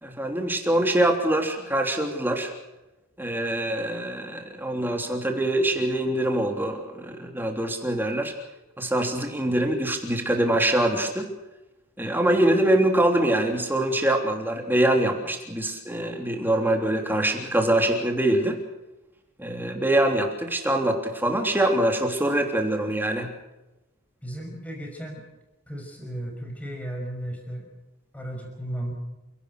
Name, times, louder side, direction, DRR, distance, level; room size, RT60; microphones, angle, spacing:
voice 1, 0.0-2.5 3.2-8.3 8.8-11.3 12.0-18.6 19.4-23.3, right 1 dB, 10° right, 3 dB, 3.2 m, -24 dB
voice 2, 24.2-25.2 25.7-27.7 28.1-28.9, right 1 dB, 5° left, 1 dB, 6.0 m, -35 dB
28.5 x 18.0 x 6.6 m, 0.99 s
head